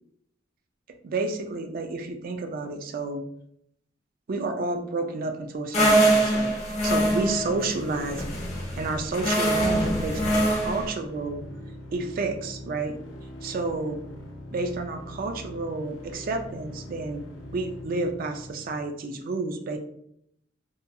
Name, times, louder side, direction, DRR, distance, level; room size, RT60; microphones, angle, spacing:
voice 1, 0.9-3.2 4.3-6.5 6.8-8.2 8.8-11.4 11.9-13.0 13.4-14.0 14.5-17.2 17.5-19.8, right 3 dB, 50° right, 5 dB, 0.4 m, -30 dB
sound 1, 5.7-10.9, right 1 dB, 35° left, 0.9 m, -24 dB
sound 2, 6.8-18.8, left 1 dB, 85° left, 0.6 m, -42 dB
2.8 x 2.5 x 2.2 m, 0.70 s
head